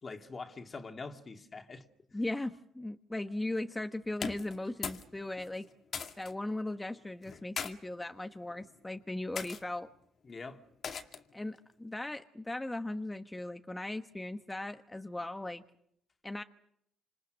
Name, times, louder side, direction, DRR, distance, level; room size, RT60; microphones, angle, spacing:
voice 1, 0.0-2.2 10.2-10.7, left 4 dB, 35° left, 2.6 m, -45 dB
voice 2, 2.1-5.7 6.2-9.9 11.3-15.6 16.2-16.4, left 2 dB, 15° left, 1.2 m, -38 dB
sound 1, 4.1-5.1 5.4-6.3 7.2-7.7 8.5-8.8 9.3-9.6 10.8-11.3, left 6 dB, 55° left, 2.2 m, -39 dB
28.0 x 27.0 x 6.4 m
cardioid pair, 90°, 0 cm